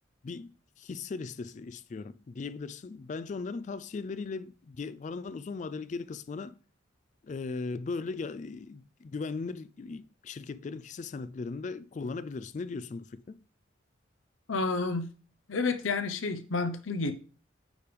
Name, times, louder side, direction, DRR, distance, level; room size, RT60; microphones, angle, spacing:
voice 1, 0.8-6.5 7.2-13.4, left 4 dB, 40° left, 0.3 m, -38 dB
voice 2, 14.5-15.1 15.5-17.1, left 3 dB, 90° left, 0.8 m, -30 dB
8.9 x 3.3 x 5.2 m
head